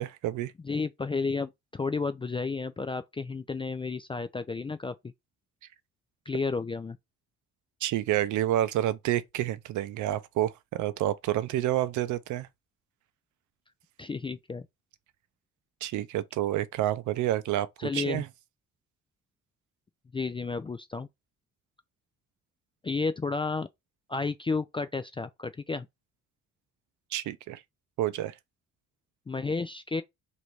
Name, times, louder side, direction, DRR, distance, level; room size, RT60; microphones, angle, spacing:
voice 1, 0.0-0.5 7.8-12.5 15.8-18.3 27.1-27.6 28.0-28.3, right 13 dB, 80° right, 0.5 m, -29 dB
voice 2, 0.6-5.1 6.3-7.0 14.0-14.7 17.8-18.2 20.1-21.1 22.8-23.7 24.1-25.9 29.3-30.0, left 4 dB, 20° left, 0.3 m, -32 dB
3.1 x 2.7 x 4.5 m
cardioid pair, 90°, 30 cm